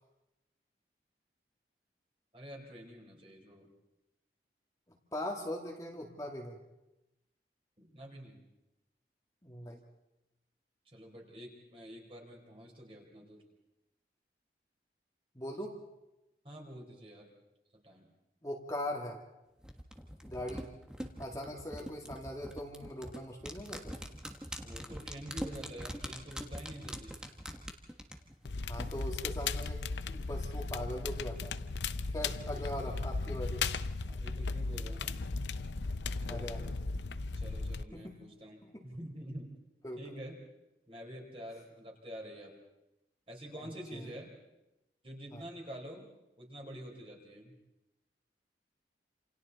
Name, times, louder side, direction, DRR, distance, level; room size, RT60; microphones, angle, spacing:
voice 1, 2.3-3.7 7.8-8.4 10.9-13.4 16.4-17.3 17.8-18.1 24.6-27.2 32.7-33.2 34.1-35.2 36.3-36.5 37.3-39.5 40.0-40.4 40.9-42.5 43.3-44.3 45.0-46.1 46.4-47.5, equal, 30° right, 0 dB, 4.4 m, -47 dB
voice 2, 5.1-6.6 9.4-9.8 15.3-15.7 18.4-19.2 20.2-20.7 21.2-24.0 28.7-29.8 30.1-31.6 32.1-33.6 36.2-36.7 37.9-38.2 38.6-38.8 39.8-40.0 43.9-44.1 45.3-45.4, left 1 dB, 20° left, -1 dB, 2.1 m, -40 dB
sound 1, 19.6-29.0 29.3-29.4, equal, 5° right, 1.4 m, -43 dB
Crackle, 28.4-37.8, left 4 dB, 80° left, 0.7 m, -36 dB
28.0 x 27.5 x 4.2 m, 0.95 s
head